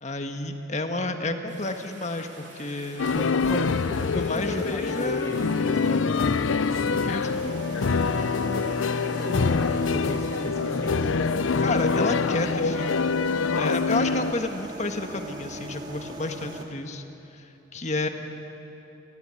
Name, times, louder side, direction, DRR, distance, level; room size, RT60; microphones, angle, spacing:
voice 1, 0.0-3.1 4.1-5.3 7.0-7.5 11.6-13.0 13.5-17.0 17.3-18.1, left 2 dB, 35° left, 6 dB, 1.6 m, -30 dB
Rain, 1.5-10.5, right 3 dB, 65° right, 3.6 m, -47 dB
sound 1, 3.0-14.3, left 4 dB, 80° left, 0.6 m, -25 dB
voice 2, 3.1-6.4 9.0-11.1, equal, 15° left, 3 dB, 1.1 m, -35 dB
sound 2, 7.2-16.6, right 2 dB, 20° right, 2.4 m, -40 dB
26.5 x 20.0 x 9.8 m, 3.0 s
head